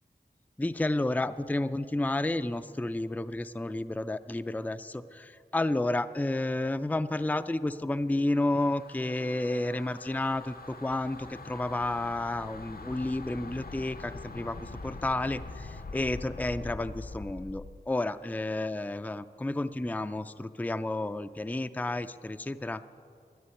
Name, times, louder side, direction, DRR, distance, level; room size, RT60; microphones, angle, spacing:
voice 1, 0.6-22.8, left 2 dB, 10° left, 10 dB, 0.4 m, -31 dB
sound 1, 8.1-17.8, left 3 dB, 60° left, 0.7 m, -44 dB
12.5 x 9.1 x 9.9 m, 2.3 s
wide cardioid pair, 50°, 18 cm